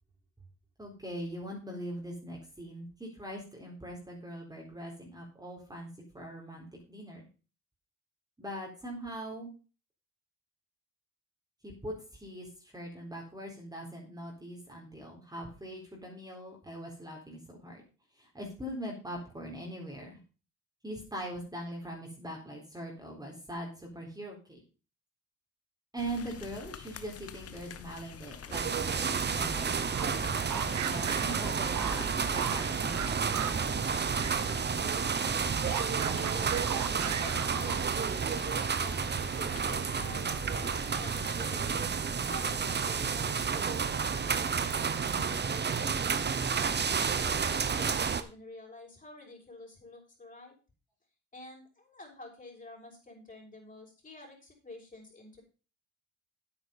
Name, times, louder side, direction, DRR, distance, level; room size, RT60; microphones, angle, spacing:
voice 1, 0.8-7.3 8.4-9.5 11.6-17.8 18.1-20.2 20.8-24.6 25.9-33.6, right 1 dB, 15° right, -2 dB, 4.1 m, -42 dB
sound 1, 26.0-41.9, left 8 dB, 50° left, 1.2 m, -47 dB
sound 2, 28.5-48.2, right 6 dB, 35° right, 1.1 m, -31 dB
sound 3, 29.8-34.5 34.8-38.1, right 11 dB, 70° right, 1.1 m, -38 dB
voice 2, 35.7-41.8 42.3-46.1 46.6-50.5 51.3-55.4, left 2 dB, 25° left, 0 dB, 5.9 m, -49 dB
9.3 x 8.8 x 5.3 m, 0.35 s
cardioid pair, 90°, 30 cm